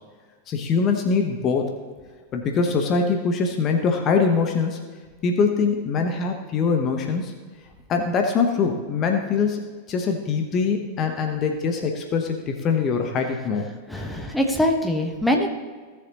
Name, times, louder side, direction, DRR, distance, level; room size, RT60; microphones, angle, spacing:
voice 1, 0.5-1.8 2.3-4.9 5.2-7.3 7.9-13.7, left 5 dB, 30° left, 4 dB, 1.1 m, -23 dB
voice 2, 13.9-15.5, left 1 dB, 5° left, 2 dB, 1.2 m, -23 dB
16.5 x 7.1 x 3.0 m, 1.5 s
figure-of-eight pair, 90°, 0 cm